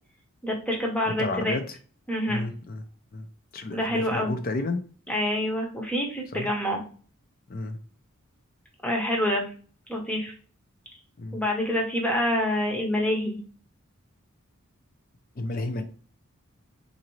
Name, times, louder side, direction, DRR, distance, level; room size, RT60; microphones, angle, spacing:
voice 1, 0.4-1.5 2.1-2.5 3.7-4.3 5.1-6.8 8.8-9.5 9.9-10.3 11.3-13.4, left 1 dB, 5° left, 0 dB, 0.7 m, -27 dB
voice 2, 1.2-1.8 2.3-2.8 3.1-3.3 3.5-4.8 6.3-6.5 7.5-7.8 11.2-11.4 15.3-15.8, left 2 dB, 40° left, 7 dB, 0.5 m, -31 dB
3.9 x 2.6 x 3.0 m, 0.40 s
head